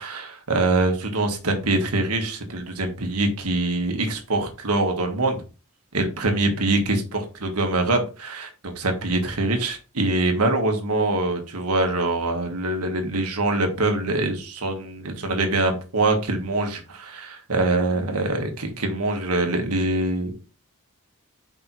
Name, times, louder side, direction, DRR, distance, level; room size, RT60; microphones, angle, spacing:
voice 1, 0.0-5.4 5.9-20.3, right 2 dB, 85° right, 4 dB, 1.5 m, -24 dB
5.3 x 4.5 x 4.1 m, 0.33 s
head